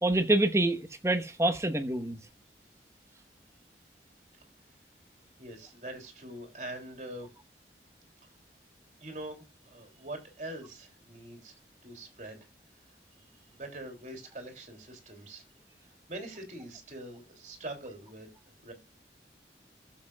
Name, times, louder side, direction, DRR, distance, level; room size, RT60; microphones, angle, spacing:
voice 1, 0.0-2.2, right 2 dB, 15° right, 1.1 m, -26 dB
voice 2, 5.4-7.3 9.0-11.5 11.8-12.4 13.5-15.5 16.1-18.3 18.6-18.7, right 1 dB, 45° right, 3.1 m, -43 dB
14.5 x 7.6 x 2.3 m
head